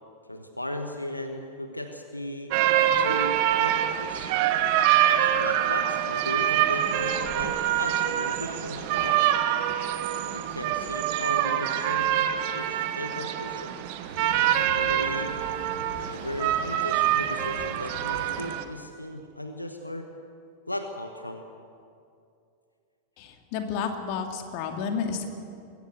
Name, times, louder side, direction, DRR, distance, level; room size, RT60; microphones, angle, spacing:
voice 1, 0.3-2.5 3.0-4.3 5.1-9.3 10.1-13.7 14.5-15.3 16.1-20.1 20.7-21.4, left 1 dB, 85° left, 5 dB, 1.2 m, -36 dB
sound 1, 2.5-18.6, right 11 dB, 45° right, 1.2 m, -25 dB
sound 2, 14.1-18.5, equal, 85° right, 3.3 m, -43 dB
voice 2, 23.2-25.3, left 6 dB, 45° left, 5 dB, 2.2 m, -31 dB
22.5 x 16.0 x 7.9 m, 2.5 s
figure-of-eight pair, 90°, 0 cm